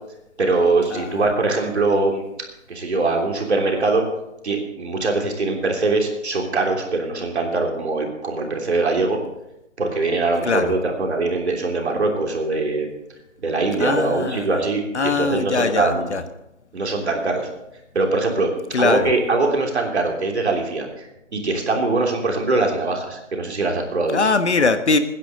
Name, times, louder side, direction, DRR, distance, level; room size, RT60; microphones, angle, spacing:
voice 1, 0.4-2.2 2.7-4.0 4.4-9.2 9.8-12.9 13.4-16.1 16.7-17.5 17.9-18.5 18.8-21.1 21.3-24.2, right 3 dB, 60° right, 1 dB, 3.3 m, -22 dB
voice 2, 0.9-1.2 10.4-10.7 13.8-14.5 14.9-16.2 18.7-19.1 24.1-25.0, left 4 dB, 60° left, 10 dB, 1.3 m, -21 dB
20.5 x 10.0 x 3.9 m, 0.87 s
figure-of-eight pair, 150°, 38 cm